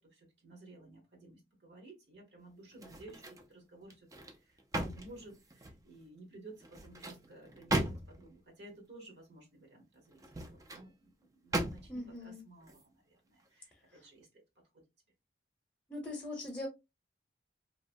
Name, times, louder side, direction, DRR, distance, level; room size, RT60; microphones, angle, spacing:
voice 1, 0.0-4.1 4.3-14.4, right 2 dB, 65° right, 1.2 m, -55 dB
sound 1, 2.7-3.5 3.9-5.9 6.6-8.3 10.1-10.9 11.5-12.1 12.6-12.8, right 1 dB, 20° right, 0.3 m, -38 dB
voice 2, 11.9-12.4 13.9-14.0 15.9-16.7, left 2 dB, 10° left, 0.7 m, -41 dB
2.8 x 2.1 x 2.6 m
head